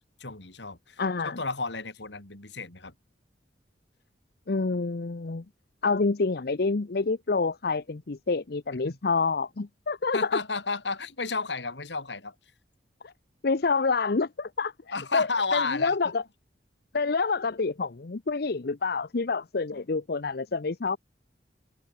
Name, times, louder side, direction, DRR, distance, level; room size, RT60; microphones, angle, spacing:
voice 1, 0.2-2.9 8.8-9.0 10.1-12.4 14.9-16.0 16.9-17.1, left 4 dB, 75° left, 3.7 m, -32 dB
voice 2, 1.0-1.4 4.5-5.4 5.8-10.4 13.0-13.1 13.4-15.3 15.5-16.2 16.9-21.0, left 4 dB, 60° left, 0.7 m, -27 dB
head